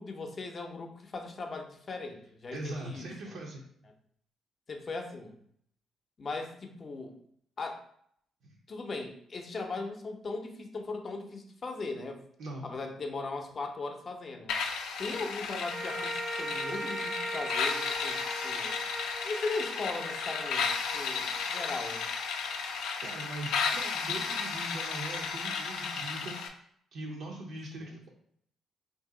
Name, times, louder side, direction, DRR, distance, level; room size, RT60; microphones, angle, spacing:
voice 1, 0.0-3.4 4.7-5.3 6.2-7.2 7.6-7.9 8.7-12.2 12.6-14.5 15.0-18.8 19.2-22.1 27.9-28.0, left 3 dB, 40° left, 4 dB, 0.6 m, -38 dB
voice 2, 2.5-3.6 8.4-8.6 12.4-12.7 23.0-26.4 26.9-28.1, right 2 dB, 75° right, -2 dB, 0.6 m, -41 dB
sound 1, 14.5-26.5, left 5 dB, 85° left, 0.4 m, -34 dB
sound 2, 15.7-22.1, right 1 dB, 20° right, 0.3 m, -40 dB
2.7 x 2.7 x 3.7 m, 0.67 s
cardioid pair, 90°, 0 cm